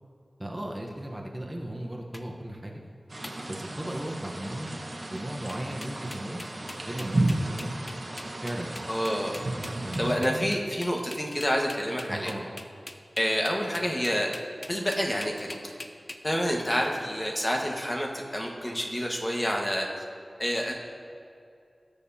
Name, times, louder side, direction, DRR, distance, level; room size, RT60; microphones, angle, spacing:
voice 1, 0.4-2.7 3.5-4.8 5.1-6.4 6.8-7.7 8.4-8.7 9.8-10.4 12.1-12.4, right 1 dB, 20° right, 0 dB, 1.0 m, -36 dB
sound 1, 2.1-2.2 3.2-3.4 3.9-4.2 5.2-5.3 5.5-16.2, left 2 dB, 45° left, 0.6 m, -42 dB
sound 2, 3.1-10.1, right 1 dB, 60° right, 1.2 m, -33 dB
voice 2, 8.9-9.4 10.0-12.3 13.2-14.3 14.7-15.6 16.2-19.9 20.4-20.7, equal, 20° left, 0 dB, 1.4 m, -28 dB
18.0 x 6.8 x 2.8 m, 2.4 s
wide cardioid pair, 65°, 0 cm